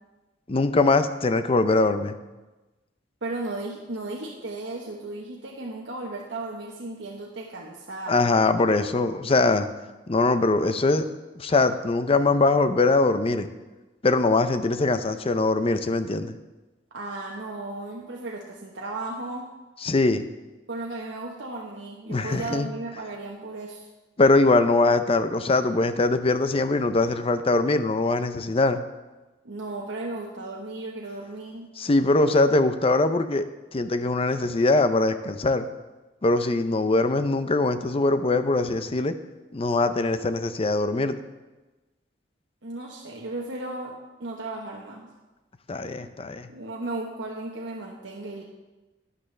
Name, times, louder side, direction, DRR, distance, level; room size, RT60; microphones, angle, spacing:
voice 1, 0.5-2.2 8.1-9.7 10.1-11.0 11.4-13.5 14.0-16.3 19.8-20.2 22.1-22.7 24.2-28.8 31.8-33.5 33.7-35.7 36.2-39.1 39.5-41.1 45.7-46.5, left 2 dB, 30° left, 10 dB, 0.6 m, -22 dB
voice 2, 3.2-8.2 16.9-19.5 20.7-23.9 29.4-31.7 42.6-45.1 46.0-46.1 46.5-48.4, right 2 dB, 90° right, -1 dB, 1.1 m, -35 dB
12.0 x 9.9 x 3.3 m, 1.1 s
head